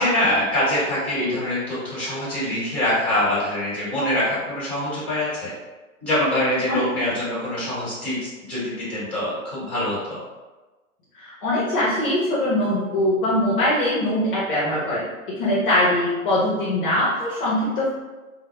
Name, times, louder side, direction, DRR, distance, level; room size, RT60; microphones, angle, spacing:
voice 1, 0.0-5.5 6.0-8.2 8.4-10.2, left 1 dB, 5° left, -10 dB, 1.1 m, -24 dB
voice 2, 11.1-17.9, left 1 dB, 40° left, -7 dB, 0.6 m, -22 dB
2.1 x 2.0 x 3.0 m, 1.2 s
hypercardioid pair, 145°, 41 cm